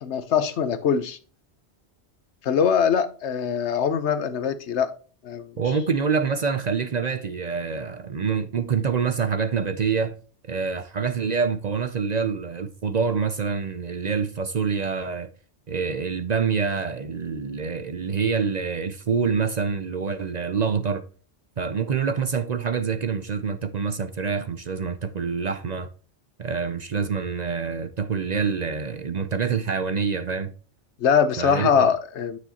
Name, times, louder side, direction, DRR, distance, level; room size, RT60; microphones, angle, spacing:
voice 1, 0.0-1.2 2.4-4.9 5.2-5.5 31.0-32.4, left 7 dB, 80° left, 1.1 m, -22 dB
voice 2, 5.6-10.1 10.4-15.3 15.7-21.0 21.6-25.9 26.4-30.5 31.4-31.9, right 5 dB, 45° right, 0.6 m, -26 dB
9.6 x 6.3 x 2.9 m
omnidirectional pair, 1.1 m